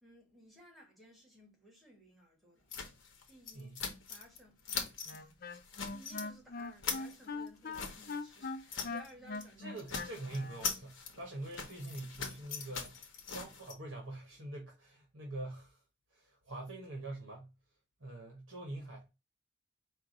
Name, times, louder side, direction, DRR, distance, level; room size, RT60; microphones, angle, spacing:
voice 1, 0.0-2.7 3.3-3.8 4.1-5.4 5.9-10.2, equal, ahead, 1.5 m, -59 dB
sound 1, 2.7-4.4 4.6-5.2 5.5-6.3 6.6-9.1 9.3-9.5 9.8-13.7, left 6 dB, 75° left, 1.0 m, -42 dB
Wind instrument woodwind instrument, 5.1-10.7, left 3 dB, 45° left, 0.5 m, -41 dB
voice 2, 9.6-15.8 16.1-17.5 18.0-19.1, right 2 dB, 75° right, 1.3 m, -44 dB
4.7 x 2.5 x 3.8 m
head